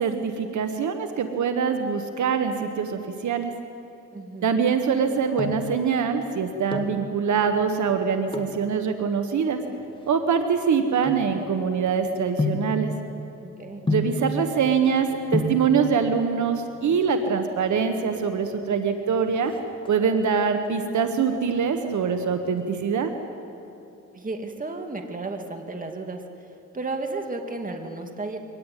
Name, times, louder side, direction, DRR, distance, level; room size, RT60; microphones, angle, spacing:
voice 1, 0.0-3.5 4.4-9.6 10.1-12.9 13.9-19.5 19.9-23.1, right 6 dB, 70° right, 7 dB, 1.5 m, -24 dB
voice 2, 4.1-4.6 13.4-13.8 24.1-26.2 26.7-28.4, right 3 dB, 25° right, 4 dB, 2.5 m, -33 dB
sound 1, 5.1-5.8 6.5-7.0 8.3-8.6 9.4-11.8 12.4-12.8 13.9-14.3 15.0-15.1 15.3-15.7 16.8-17.3 17.6-17.7 17.9-18.1 18.5-18.9 19.2-20.2 20.6-21.1 21.4-22.6 22.9-23.0, left 3 dB, 15° left, 2.4 m, -30 dB
23.5 x 18.5 x 9.3 m, 2.8 s
cardioid pair, 90°, 30 cm